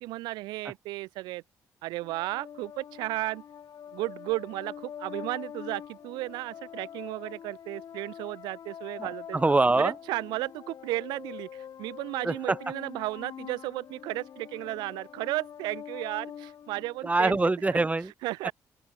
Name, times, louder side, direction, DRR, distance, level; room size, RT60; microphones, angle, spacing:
voice 1, 0.0-1.4 1.8-3.4 3.9-9.4 9.8-17.4 17.7-17.8 18.2-18.5, right 19 dB, 85° right, 0.6 m, -34 dB
sound 1, 2.0-17.5, left 8 dB, 60° left, 1.7 m, -44 dB
voice 2, 9.3-9.9 12.2-12.6 17.0-18.1, right 2 dB, 20° right, 0.8 m, -24 dB
open air
supercardioid pair, 65°, 7 cm